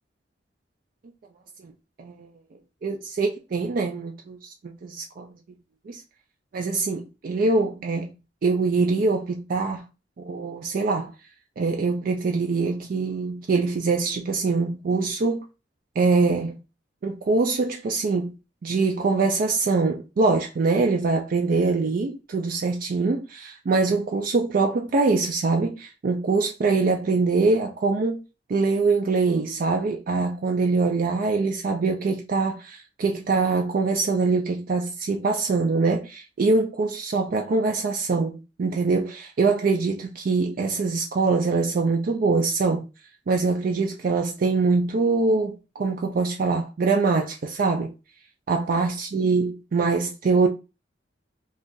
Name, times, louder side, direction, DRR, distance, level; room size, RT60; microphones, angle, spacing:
voice 1, 2.8-5.3 5.9-6.0 6.5-8.1 8.4-9.8 10.2-11.1 11.6-15.4 16.0-16.6 17.0-18.3 18.6-28.2 28.5-42.9 43.3-47.9 48.5-50.5, right 4 dB, 50° right, 0.4 m, -23 dB
2.5 x 2.4 x 3.7 m
head